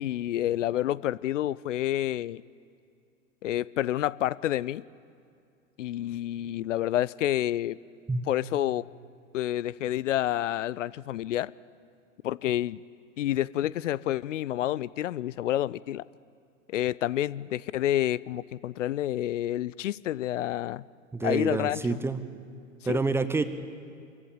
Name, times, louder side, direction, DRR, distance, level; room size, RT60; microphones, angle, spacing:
voice 1, 0.0-2.4 3.4-4.8 5.8-7.8 8.3-8.8 9.3-11.5 12.2-12.8 13.2-16.0 16.7-20.8 21.2-22.0 22.9-23.0, left 13 dB, 65° left, 21 dB, 0.5 m, -29 dB
voice 2, 21.1-22.2 22.9-23.4, right 3 dB, 5° right, 11 dB, 0.8 m, -27 dB
25.0 x 14.5 x 8.9 m, 2.4 s
figure-of-eight pair, 95°, 41 cm